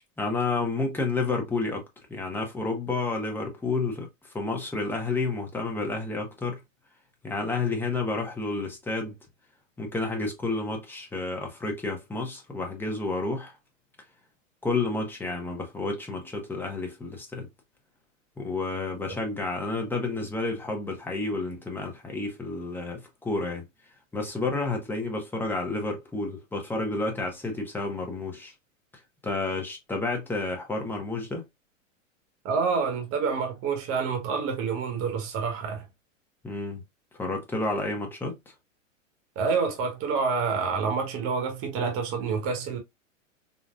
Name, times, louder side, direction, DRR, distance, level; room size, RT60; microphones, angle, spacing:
voice 1, 0.2-1.8 2.1-4.1 4.3-6.6 7.2-9.1 9.8-13.6 14.6-17.5 18.4-23.6 24.1-28.5 29.2-31.4 36.4-36.8 37.2-38.3, left 3 dB, 5° left, 0.9 m, -30 dB
voice 2, 32.4-35.8 39.3-42.8, right 5 dB, 35° right, 1.2 m, -28 dB
3.9 x 2.4 x 2.4 m
hypercardioid pair, 115°, 39 cm